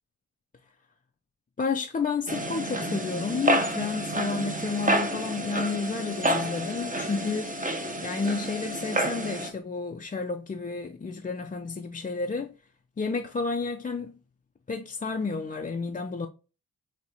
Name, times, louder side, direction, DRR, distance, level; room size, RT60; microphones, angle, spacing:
voice 1, 1.6-7.5 8.0-12.5 13.0-14.1 14.7-16.3, left 4 dB, 25° left, 0.4 m, -31 dB
sound 1, 2.3-9.5, right 1 dB, 20° right, 0.9 m, -29 dB
5.3 x 2.2 x 2.9 m
cardioid pair, 60°, 35 cm